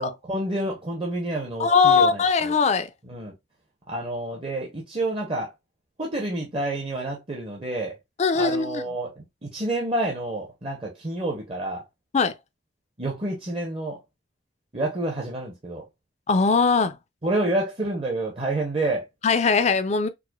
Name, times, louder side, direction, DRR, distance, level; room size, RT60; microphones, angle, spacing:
voice 1, 0.0-2.5 3.1-3.3 3.9-5.5 6.0-8.0 8.3-11.8 13.0-14.0 14.7-15.8 17.2-19.1, right 2 dB, 30° right, 0.7 m, -29 dB
voice 2, 1.6-2.9 8.2-8.8 12.1-12.3 16.3-17.0 19.2-20.1, left 5 dB, 35° left, 0.4 m, -20 dB
4.7 x 2.1 x 2.3 m
head